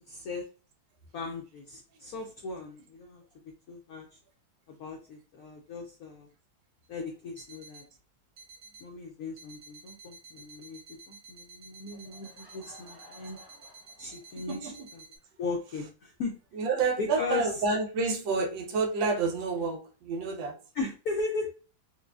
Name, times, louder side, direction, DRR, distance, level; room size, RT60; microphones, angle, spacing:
voice 1, 0.1-0.4 1.1-3.2 3.7-4.1 4.8-6.3 6.9-7.8 8.8-10.8 11.1-13.4 14.0-15.0 15.4-16.4 17.0-17.5 20.7-21.5, left 3 dB, 70° left, 0.8 m, -37 dB
sound 1, 6.8-6.9 7.4-7.9 8.4-8.9 9.4-15.2, right 4 dB, 60° right, 1.4 m, -52 dB
Laughter / Crowd, 11.9-14.7, left 1 dB, 15° left, 0.8 m, -56 dB
voice 2, 14.4-14.9 16.5-20.6, right 4 dB, 80° right, 1.4 m, -29 dB
4.6 x 2.2 x 2.3 m
omnidirectional pair, 2.1 m